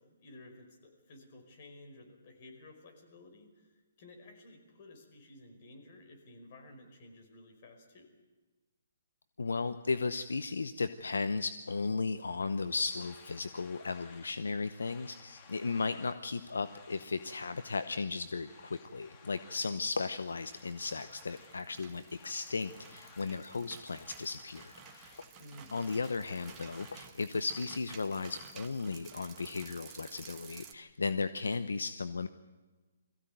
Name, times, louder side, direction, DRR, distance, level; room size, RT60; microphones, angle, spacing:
voice 1, 0.0-8.1 25.4-25.9, left 1 dB, 45° left, 3 dB, 5.1 m, -54 dB
voice 2, 9.4-25.1 25.7-32.3, left 4 dB, 80° left, 11 dB, 0.8 m, -35 dB
sound 1, 12.5-27.1, left 4 dB, 30° left, 2.4 m, -58 dB
sound 2, 20.3-30.7, right 7 dB, 20° right, 1.6 m, -54 dB
22.0 x 15.5 x 9.3 m, 1.3 s
hypercardioid pair, 140°, 0 cm